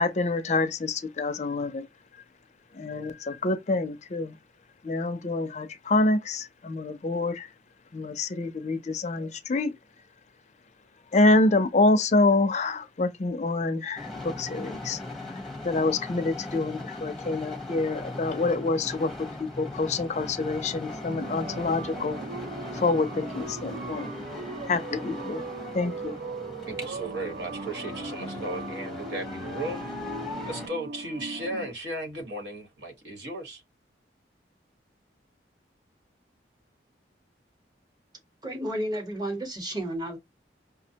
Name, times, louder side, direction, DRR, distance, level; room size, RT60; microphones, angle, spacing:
voice 1, 0.0-1.9 2.7-4.4 4.8-7.5 7.9-9.7 11.1-22.2 22.7-24.1 24.7-25.5 25.7-26.2, left 2 dB, 40° left, 0.4 m, -27 dB
sound 1, 14.0-30.7, left 2 dB, ahead, 0.7 m, -39 dB
sound 2, 21.1-31.7, right 3 dB, 60° right, 0.4 m, -39 dB
voice 2, 26.7-29.9 30.5-33.6, right 1 dB, 75° right, 1.2 m, -35 dB
voice 3, 38.4-40.2, right 1 dB, 20° right, 0.9 m, -32 dB
5.4 x 2.1 x 2.8 m
head